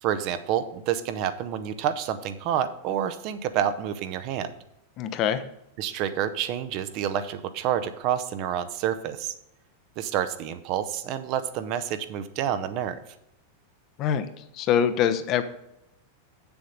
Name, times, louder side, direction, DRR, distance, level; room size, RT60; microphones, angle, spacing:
voice 1, 0.0-4.5 5.8-9.3 10.0-13.0, right 10 dB, 40° right, 10 dB, 0.7 m, -28 dB
voice 2, 5.0-5.4 14.0-14.3 14.6-15.4, left 9 dB, 35° left, 10 dB, 0.7 m, -23 dB
7.7 x 7.0 x 5.1 m, 0.83 s
figure-of-eight pair, 90°, 0 cm